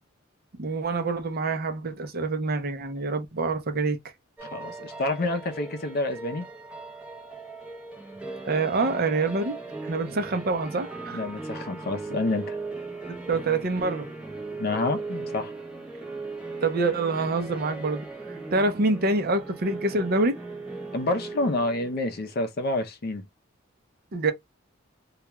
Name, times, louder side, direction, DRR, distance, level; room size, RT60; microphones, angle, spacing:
voice 1, 0.6-4.0 8.4-9.6 9.8-11.2 13.1-14.1 16.6-18.0 18.5-20.3 24.1-24.3, right 3 dB, 50° right, 0.6 m, -26 dB
voice 2, 4.4-6.5 11.1-12.6 14.6-15.5 20.9-23.2, left 2 dB, 50° left, 0.6 m, -28 dB
sound 1, 4.4-22.5, right 3 dB, 5° right, 0.7 m, -38 dB
2.3 x 2.2 x 2.9 m
head